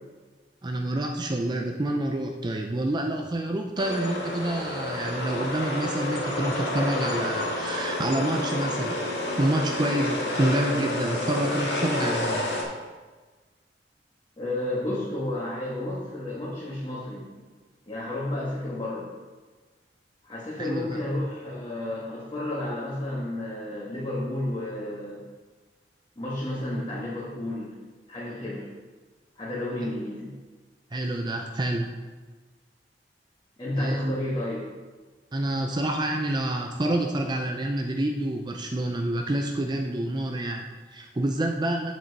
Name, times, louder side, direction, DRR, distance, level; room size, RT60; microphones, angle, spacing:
voice 1, 0.6-9.0 9.4-12.5 20.6-21.0 30.9-31.9 33.8-34.2 35.3-41.9, right 1 dB, 25° right, 3 dB, 0.5 m, -28 dB
sound 1, 3.8-12.6, left 1 dB, 90° left, 1.7 m, -29 dB
voice 2, 14.4-17.2 17.9-19.1 20.2-25.2 26.1-27.7 28.1-28.7 29.3-30.3 33.6-34.6, left 1 dB, 30° left, -7 dB, 1.7 m, -31 dB
7.7 x 7.4 x 4.1 m, 1.3 s
head